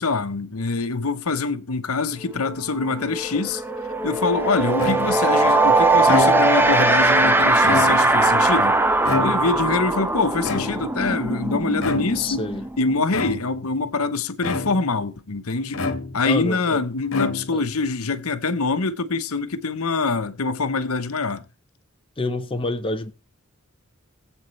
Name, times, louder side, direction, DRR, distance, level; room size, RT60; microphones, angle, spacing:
voice 1, 0.0-3.6 4.0-8.8 9.2-12.5 12.8-15.8 16.1-21.4, left 4 dB, 80° left, 1.0 m, -24 dB
sound 1, 2.3-2.5 2.8-13.4, right 2 dB, 10° right, 0.8 m, -20 dB
sound 2, 4.8-5.3 5.9-6.7 7.5-8.3 9.0-9.7 10.4-11.1 11.8-12.3 13.1-13.7 14.4-15.0 15.7-16.4 17.1-17.8, left 3 dB, 65° left, 1.8 m, -28 dB
voice 2, 12.2-12.7 16.3-16.8 17.5-17.6 22.2-23.1, left 2 dB, 25° left, 0.8 m, -27 dB
19.5 x 8.0 x 3.2 m
head